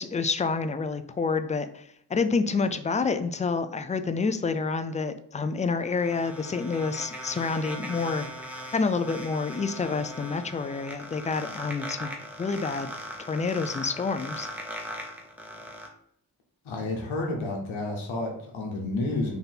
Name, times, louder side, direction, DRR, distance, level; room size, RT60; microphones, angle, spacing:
voice 1, 0.0-8.3 8.7-12.1 12.4-12.9 13.2-14.5, left 4 dB, 20° left, 10 dB, 0.3 m, -28 dB
sound 1, 5.4-15.9, equal, 5° right, 1.0 m, -39 dB
voice 2, 16.6-19.4, left 2 dB, 85° left, 1 dB, 1.0 m, -30 dB
3.4 x 2.6 x 4.0 m, 0.71 s
cardioid pair, 40°, 46 cm